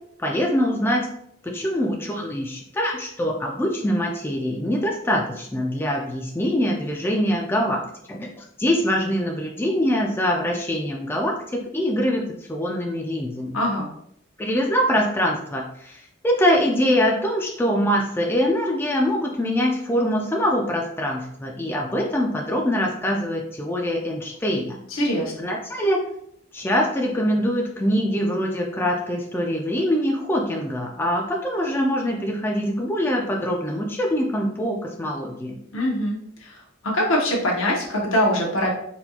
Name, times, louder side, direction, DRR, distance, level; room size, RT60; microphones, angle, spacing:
voice 1, 0.2-1.1 1.4-12.2 12.5-13.6 14.4-24.8 25.4-26.1 26.5-35.6, equal, 10° left, 0 dB, 0.3 m, -24 dB
voice 2, 13.5-13.9 24.9-25.3 35.7-36.6 36.8-38.7, equal, 80° left, -1 dB, 1.0 m, -23 dB
4.2 x 2.3 x 2.8 m, 0.72 s
head